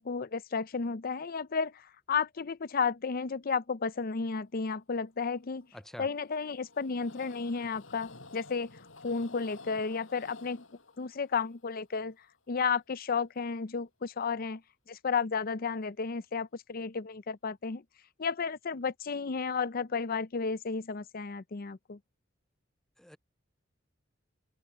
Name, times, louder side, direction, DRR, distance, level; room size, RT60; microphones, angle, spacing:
voice 1, 0.0-5.7 6.0-8.7 9.0-10.6 11.0-12.2 12.5-14.6 14.9-17.8 18.2-22.0, left 5 dB, 50° left, 0.6 m, -33 dB
Train, 5.3-12.6 13.1-13.2 13.4-13.5, left 3 dB, 90° left, 6.3 m, -52 dB
voice 2, 5.7-6.1 23.0-23.2, equal, ahead, 0.4 m, -46 dB
head